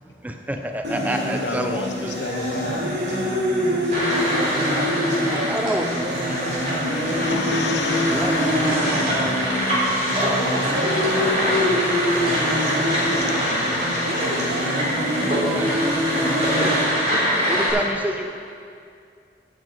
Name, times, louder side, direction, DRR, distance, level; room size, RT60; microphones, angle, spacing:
voice 1, 0.2-2.1 5.3-6.1 7.3-7.4 8.1-8.4 15.3-15.7 16.6-16.8 17.5-18.2, right 1 dB, 10° right, 4 dB, 0.5 m, -28 dB
sound 1, 0.8-16.9, equal, 90° right, 2.6 m, -25 dB
voice 2, 1.4-2.9 6.5-9.0 11.9-14.3, left 4 dB, 80° left, 5 dB, 0.9 m, -33 dB
sound 2, 3.9-17.7, equal, 40° right, 3.1 m, -24 dB
voice 3, 4.2-5.5 5.9-6.7 10.5-12.2 14.0-15.1, equal, 70° right, -1 dB, 1.7 m, -32 dB
15.0 x 6.6 x 4.5 m, 2.3 s
head